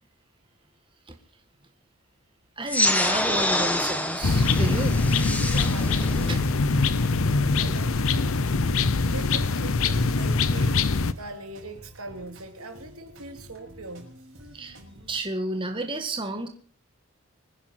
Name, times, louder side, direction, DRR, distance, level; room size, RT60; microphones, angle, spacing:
voice 1, 2.6-5.0 6.2-6.4 14.5-14.8 15.1-16.5, right 1 dB, 25° right, 1.8 m, -31 dB
sound 1, 2.7-7.7, left 1 dB, 5° left, 1.4 m, -27 dB
sound 2, 4.2-11.1, left 3 dB, 70° left, 0.8 m, -23 dB
sound 3, 4.8-15.2, right 1 dB, 60° right, 6.6 m, -49 dB
voice 2, 5.4-6.4 7.0-8.4 9.1-14.1, right 2 dB, 85° right, 2.8 m, -41 dB
24.5 x 10.5 x 4.4 m
head